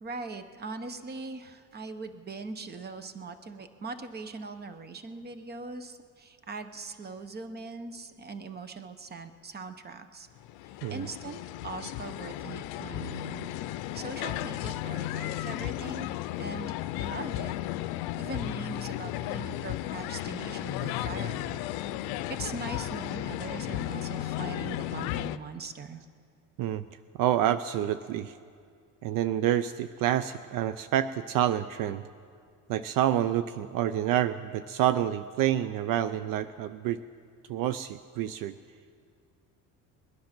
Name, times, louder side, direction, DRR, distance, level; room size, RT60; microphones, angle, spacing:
voice 1, 0.0-10.3 10.6-13.5 13.9-17.6 18.2-21.6 22.0-26.0, right 4 dB, 25° right, 10 dB, 0.9 m, -41 dB
sound 1, 10.4-25.4, left 14 dB, 85° left, 0.5 m, -34 dB
voice 2, 27.2-28.4 29.0-32.0 32.7-37.0 37.5-38.6, right 11 dB, 65° right, 13 dB, 0.5 m, -28 dB
21.0 x 10.5 x 6.0 m, 2.3 s
cardioid pair, 120°, 36 cm